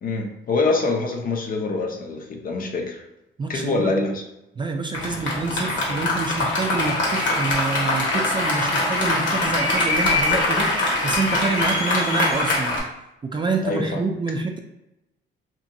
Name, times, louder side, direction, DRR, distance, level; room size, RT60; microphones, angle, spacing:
voice 1, 0.0-3.0 3.5-4.2 13.6-14.0, left 3 dB, 45° left, 3 dB, 0.6 m, -25 dB
voice 2, 3.4-3.9 4.6-12.8 13.2-14.6, right 4 dB, 25° right, 3 dB, 0.3 m, -27 dB
Applause, 4.9-12.8, left 2 dB, 65° left, 1.1 m, -23 dB
2.9 x 2.6 x 2.6 m, 0.89 s
cardioid pair, 90°, 20 cm